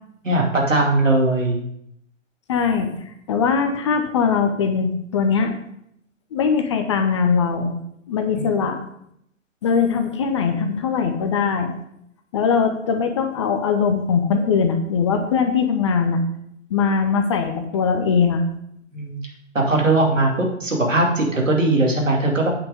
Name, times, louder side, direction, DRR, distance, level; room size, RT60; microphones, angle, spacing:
voice 1, 0.2-1.6 8.3-8.5 18.9-19.2 19.5-22.5, right 2 dB, 75° right, 0 dB, 2.6 m, -19 dB
voice 2, 2.5-5.5 6.3-7.7 8.1-8.8 9.6-11.7 12.3-16.2 16.7-18.4, left 6 dB, 25° left, 6 dB, 0.6 m, -21 dB
8.9 x 5.8 x 5.0 m, 0.73 s
figure-of-eight pair, 125°, 38 cm